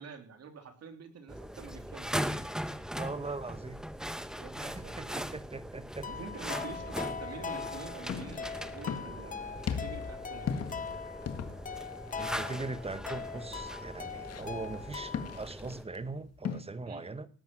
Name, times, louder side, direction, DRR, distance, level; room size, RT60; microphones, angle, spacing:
voice 1, 0.0-2.2 4.4-5.2 6.1-10.6 16.9-17.0, right 5 dB, 55° right, 6 dB, 3.2 m, -47 dB
sound 1, 1.3-15.8, equal, ahead, 1.0 m, -40 dB
voice 2, 2.9-3.8 4.6-6.1 12.2-17.3, right 3 dB, 20° right, 13 dB, 1.3 m, -40 dB
sound 2, 6.0-15.4, left 6 dB, 25° left, 0.7 m, -41 dB
sound 3, 7.7-16.6, left 7 dB, 55° left, 1.8 m, -40 dB
18.5 x 9.1 x 6.0 m, 0.43 s
cardioid pair, 90°, 30 cm